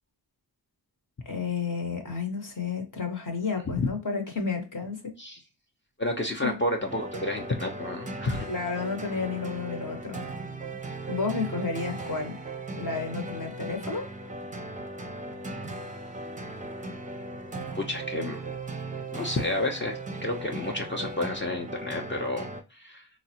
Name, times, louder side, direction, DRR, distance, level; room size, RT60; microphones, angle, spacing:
voice 1, 1.3-5.1 6.4-6.6 8.5-10.2 11.1-12.4 12.8-14.1, left 5 dB, 50° left, 0.9 m, -31 dB
voice 2, 6.0-8.5 17.7-18.4 19.1-23.1, left 1 dB, 30° left, 0.6 m, -31 dB
sound 1, 6.8-22.6, right 2 dB, 20° right, 0.5 m, -37 dB
3.7 x 2.1 x 2.7 m
cardioid pair, 65°, 41 cm